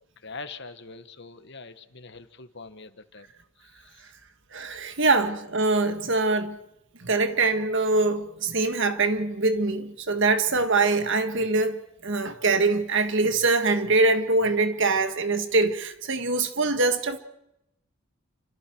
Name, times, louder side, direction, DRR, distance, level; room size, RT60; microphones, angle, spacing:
voice 1, 0.2-3.3 3.6-4.1, left 4 dB, 50° left, 1.5 m, -43 dB
voice 2, 4.5-6.6 7.0-17.2, right 3 dB, 55° right, 1.7 m, -23 dB
29.0 x 26.0 x 4.6 m
head